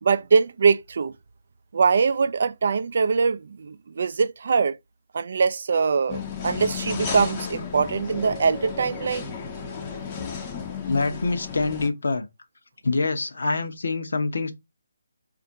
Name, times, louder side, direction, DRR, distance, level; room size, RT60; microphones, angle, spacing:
voice 1, 0.0-1.1 1.7-4.8 5.1-9.3, right 5 dB, 50° right, 0.4 m, -22 dB
sound 1, 6.1-11.9, left 6 dB, 25° left, 0.6 m, -33 dB
voice 2, 10.9-12.2 12.8-14.5, left 3 dB, 60° left, 0.8 m, -25 dB
4.2 x 2.5 x 3.9 m
figure-of-eight pair, 145°, 0 cm